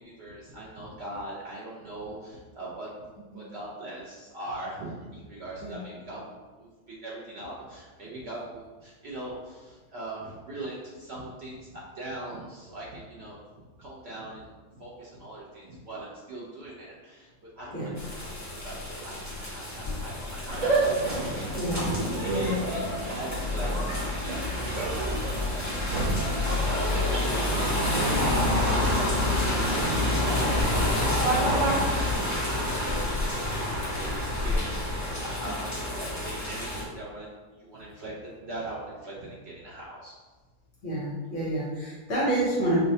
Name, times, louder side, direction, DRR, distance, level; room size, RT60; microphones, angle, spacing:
voice 1, 0.0-2.9 3.3-13.4 13.8-17.3 17.6-18.3 18.6-20.8 21.1-21.9 22.1-22.8 23.1-23.7 24.3-24.4 24.8-33.6 33.9-37.3 37.6-40.1, right 1 dB, 60° right, -5 dB, 0.7 m, -41 dB
sound 1, 18.0-36.8, left 2 dB, 15° left, 0.7 m, -29 dB
sound 2, 20.5-31.7, right 2 dB, 90° right, 0.3 m, -30 dB
voice 2, 21.5-22.7 35.4-35.5 40.8-42.9, right 1 dB, 55° left, -6 dB, 1.2 m, -29 dB
5.4 x 2.1 x 2.7 m, 1.3 s
omnidirectional pair, 1.7 m